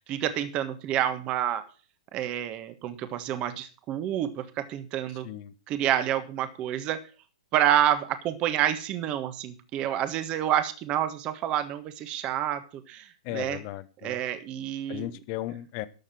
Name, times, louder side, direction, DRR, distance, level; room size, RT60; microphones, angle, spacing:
voice 1, 0.1-1.6 2.1-5.3 5.7-7.0 7.5-13.6 14.0-15.1, right 11 dB, 30° right, 11 dB, 1.4 m, -28 dB
voice 2, 13.2-14.2 14.9-15.9, left 15 dB, 40° left, 14 dB, 1.2 m, -36 dB
12.0 x 6.6 x 7.6 m, 0.37 s
hypercardioid pair, 140°, 3 cm